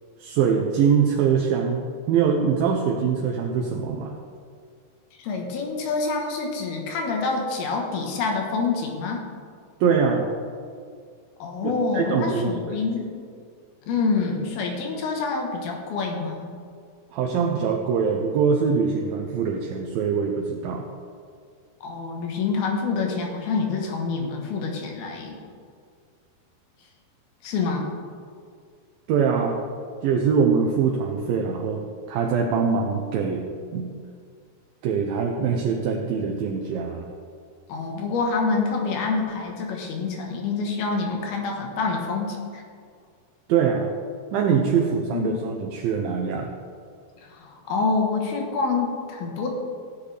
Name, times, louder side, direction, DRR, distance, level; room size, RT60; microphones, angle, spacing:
voice 1, 0.2-4.1 9.8-10.3 11.6-12.8 17.1-20.9 29.1-29.6 30.0-33.5 33.7-33.9 34.8-37.1 43.5-43.9 44.3-46.5, right 6 dB, 75° right, 1 dB, 2.4 m, -23 dB
voice 2, 5.2-9.2 11.4-13.1 13.9-16.6 21.8-25.4 27.4-27.9 37.7-42.6 45.1-45.4 47.2-49.6, left 4 dB, 80° left, 1 dB, 3.3 m, -27 dB
16.5 x 8.3 x 3.4 m, 2.2 s
omnidirectional pair, 4.4 m